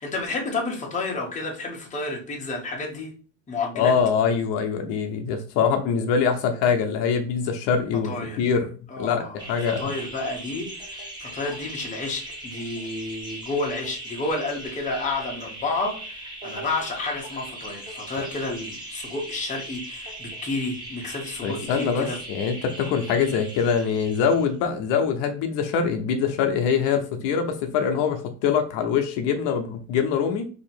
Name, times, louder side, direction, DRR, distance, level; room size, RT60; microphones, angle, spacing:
voice 1, 0.0-3.1 3.5-3.9 8.0-8.5 8.9-22.2, left 3 dB, 15° left, 0 dB, 0.9 m, -31 dB
voice 2, 3.7-8.7 9.0-9.9 21.4-30.4, left 6 dB, 65° left, 6 dB, 0.7 m, -24 dB
sound 1, 9.4-24.5, right 1 dB, 10° right, 1.0 m, -39 dB
2.9 x 2.8 x 4.2 m, 0.39 s
cardioid pair, 150°, 43 cm